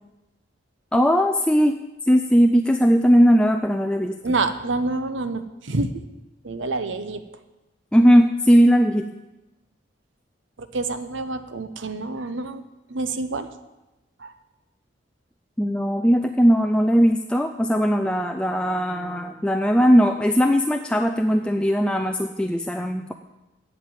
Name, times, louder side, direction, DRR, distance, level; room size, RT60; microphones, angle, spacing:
voice 1, 0.9-1.8 2.0-4.3 7.9-9.1 15.6-23.1, equal, 5° left, 5 dB, 0.3 m, -19 dB
voice 2, 4.2-6.0 6.4-7.2 10.6-12.6 12.9-13.5 14.2-14.3, right 3 dB, 80° right, 10 dB, 0.8 m, -27 dB
8.1 x 7.5 x 8.8 m, 1.0 s
head